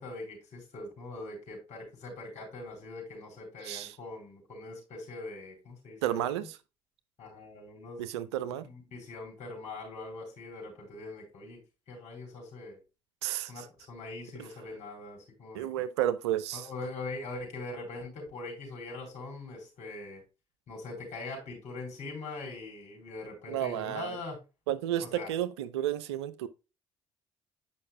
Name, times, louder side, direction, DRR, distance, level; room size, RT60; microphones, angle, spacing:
voice 1, 0.0-6.2 7.2-11.6 11.9-12.8 13.5-15.7 16.5-20.2 20.7-24.4 25.0-25.3, left 3 dB, 55° left, 3.9 m, -42 dB
voice 2, 6.0-6.5 8.0-8.7 13.2-13.7 15.5-16.7 23.5-24.2 24.7-26.5, right 12 dB, 80° right, 0.5 m, -32 dB
8.4 x 5.5 x 2.2 m
hypercardioid pair, 50°, 14 cm